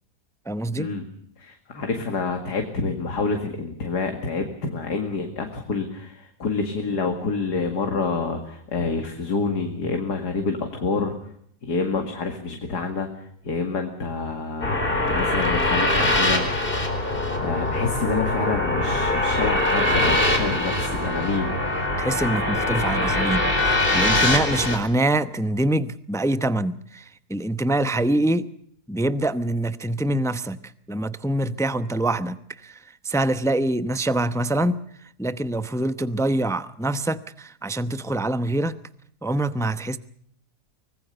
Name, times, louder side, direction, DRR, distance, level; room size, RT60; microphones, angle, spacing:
voice 1, 0.5-0.9 22.0-28.5 28.9-30.6 30.9-34.8 35.2-38.7 39.2-40.0, right 1 dB, 5° left, 12 dB, 0.4 m, -25 dB
voice 2, 1.4-11.1 11.6-16.5 16.8-16.9 17.3-21.6, left 4 dB, 85° left, 4 dB, 2.7 m, -28 dB
sound 1, 14.6-24.8, left 1 dB, 35° left, 4.4 m, -23 dB
25.0 x 19.5 x 6.6 m, 0.67 s
omnidirectional pair, 1.7 m